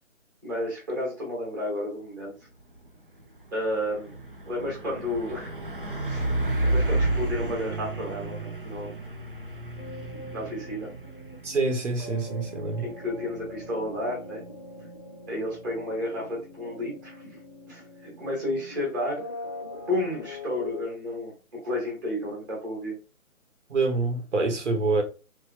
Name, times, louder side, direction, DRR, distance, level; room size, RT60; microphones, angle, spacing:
voice 1, 0.4-2.3 3.5-4.1 4.5-5.5 6.1-6.4 6.6-8.9 10.3-10.9 12.8-14.4 15.3-17.4 17.7-19.3 19.9-23.0, left 1 dB, 15° right, 0.9 m, -32 dB
Truck, 2.6-2.9 3.2-15.8, right 2 dB, 40° right, 0.4 m, -32 dB
sound 1, 9.8-20.8, left 2 dB, 30° left, 0.7 m, -43 dB
voice 2, 11.4-12.8 23.7-25.0, right 3 dB, 55° right, 0.9 m, -26 dB
3.2 x 2.7 x 2.5 m
hypercardioid pair, 160°, 43 cm